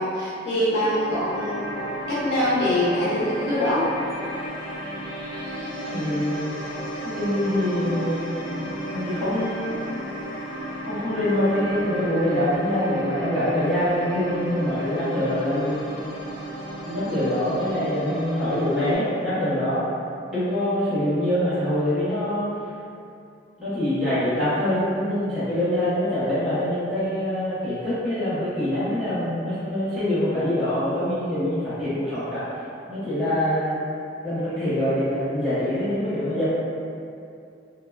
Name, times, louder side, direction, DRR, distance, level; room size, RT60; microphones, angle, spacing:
voice 1, 0.0-1.7 2.1-3.9 19.0-19.1, left 1 dB, 60° left, -9 dB, 0.7 m, -24 dB
sound 1, 0.8-18.9, right 1 dB, 25° left, 1.0 m, -33 dB
voice 2, 5.9-6.5 7.0-8.3 8.9-9.8 10.9-15.8 16.9-19.9 20.3-22.4 23.6-32.4 32.9-33.7 34.2-36.4, left 1 dB, ahead, -17 dB, 0.8 m, -24 dB
3.3 x 2.1 x 2.3 m, 2.5 s
head